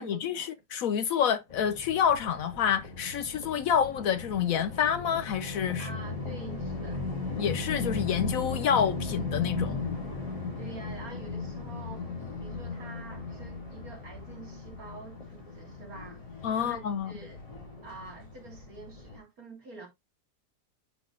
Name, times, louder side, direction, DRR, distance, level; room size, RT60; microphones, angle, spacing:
voice 1, 0.0-5.9 7.4-9.8 16.4-17.1, left 8 dB, 70° left, 0.9 m, -28 dB
sound 1, 1.5-19.2, left 3 dB, 20° left, 2.9 m, -37 dB
voice 2, 5.8-7.0 10.6-12.1 12.4-16.2 16.5-17.4 17.8-19.9, right 3 dB, 60° right, 3.2 m, -47 dB
8.1 x 6.8 x 2.6 m
omnidirectional pair, 1.8 m